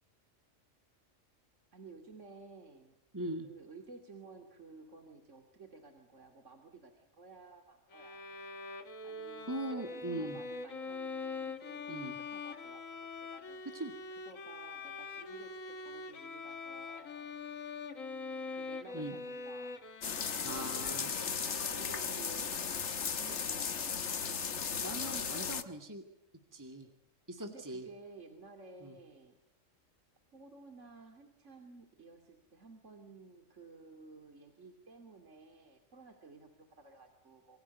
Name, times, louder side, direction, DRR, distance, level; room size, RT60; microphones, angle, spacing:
voice 1, 1.7-3.0 3.4-8.2 9.0-13.8 14.1-17.3 18.5-19.9 20.2-20.9 21.4-22.7 22.9-24.4 27.4-29.4 30.3-37.6, right 4 dB, 65° right, 5 dB, 3.0 m, -54 dB
voice 2, 3.1-3.5 9.5-10.4 11.9-12.2 13.7-13.9 18.9-19.2 20.4-21.1 24.8-26.0 26.5-26.9 27.3-27.9 28.8-29.0, right 1 dB, 15° right, 5 dB, 2.2 m, -40 dB
Bowed string instrument, 7.9-22.4, left 3 dB, 85° left, 2.1 m, -44 dB
sound 1, 20.0-25.6, left 6 dB, 60° left, 1.5 m, -36 dB
27.5 x 24.5 x 8.2 m, 0.74 s
omnidirectional pair, 1.3 m